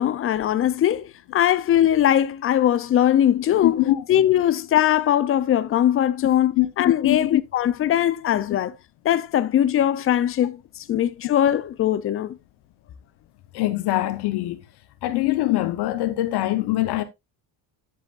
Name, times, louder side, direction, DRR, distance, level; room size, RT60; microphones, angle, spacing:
voice 1, 0.0-3.8 4.1-8.7 9.0-12.4, left 11 dB, 30° left, 0.4 m, -20 dB
voice 2, 3.6-4.0 6.6-6.7 7.0-7.3 8.3-8.4 13.5-14.6 15.0-17.0, left 16 dB, 60° left, 0.9 m, -23 dB
10.5 x 7.6 x 2.4 m
cardioid pair, 175°, 45 cm